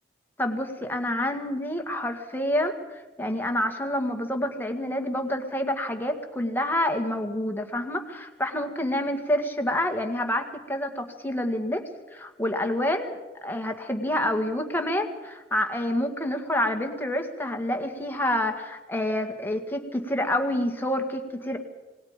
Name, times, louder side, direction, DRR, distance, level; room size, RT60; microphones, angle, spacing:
voice 1, 0.4-21.6, left 1 dB, 10° left, 4 dB, 2.0 m, -28 dB
27.0 x 19.5 x 5.2 m, 1.1 s
head